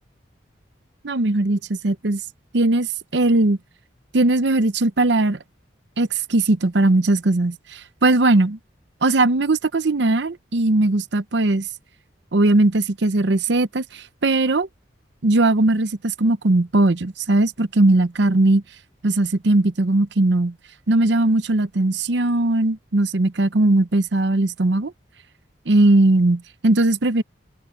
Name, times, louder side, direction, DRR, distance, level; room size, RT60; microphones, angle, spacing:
voice 1, 1.0-2.2 2.5-3.6 4.1-5.4 6.0-8.6 9.0-11.7 12.3-14.7 15.2-18.6 19.0-20.5 20.9-24.9 25.7-27.2, right 2 dB, 70° right, 0.8 m, -19 dB
open air
head